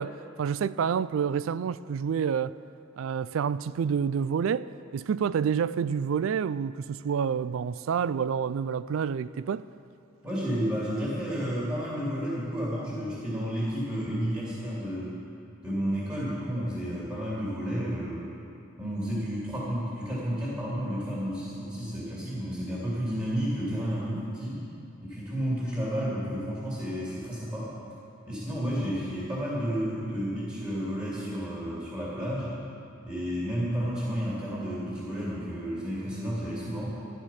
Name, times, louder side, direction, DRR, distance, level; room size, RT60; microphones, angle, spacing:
voice 1, 0.0-2.6 3.0-9.6 24.1-24.2, right 7 dB, 85° right, 0.3 m, -28 dB
voice 2, 10.2-15.2 15.6-18.2 18.8-24.6 25.0-27.7 28.3-32.5 33.0-36.9, equal, 20° right, 2.8 m, -31 dB
12.5 x 12.0 x 5.8 m
head